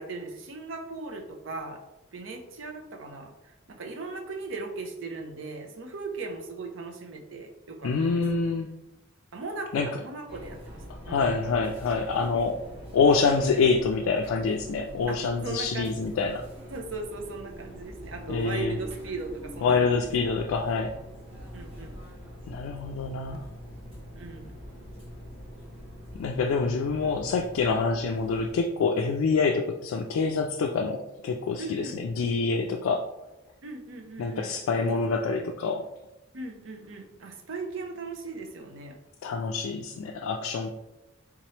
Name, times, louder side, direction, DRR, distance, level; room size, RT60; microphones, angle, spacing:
voice 1, 0.0-1.8 2.1-8.5 9.3-11.3 15.1-15.2 15.4-15.9 16.7-20.1 21.5-22.0 22.9-23.0 24.1-24.6 26.4-26.7 31.6-32.0 33.6-34.5 34.8-35.0 36.3-39.0, right 3 dB, 65° right, 4 dB, 0.6 m, -38 dB
voice 2, 7.8-8.7 9.7-9.9 11.1-12.6 12.9-16.4 18.3-18.8 19.6-20.9 22.5-23.4 26.1-33.0 34.2-35.9 39.2-40.7, left 4 dB, 90° left, 3 dB, 0.3 m, -26 dB
sound 1, 10.3-28.5, equal, 30° right, 1.2 m, -44 dB
3.6 x 2.9 x 3.1 m, 0.93 s
head